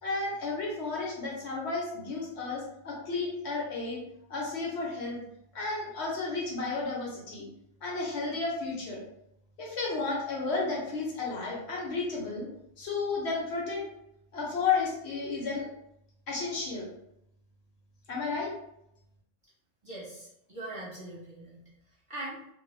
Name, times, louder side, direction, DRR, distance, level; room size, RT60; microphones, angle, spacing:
voice 1, 0.0-4.0 4.3-5.2 5.5-7.5 7.8-9.0 9.6-12.5 12.8-13.8 14.3-15.7 16.3-16.9 18.1-18.5, left 4 dB, 65° left, -3 dB, 0.9 m, -32 dB
voice 2, 19.8-21.6 22.1-22.4, right 2 dB, 30° right, -9 dB, 0.8 m, -41 dB
2.3 x 2.0 x 3.1 m, 0.80 s
omnidirectional pair, 1.2 m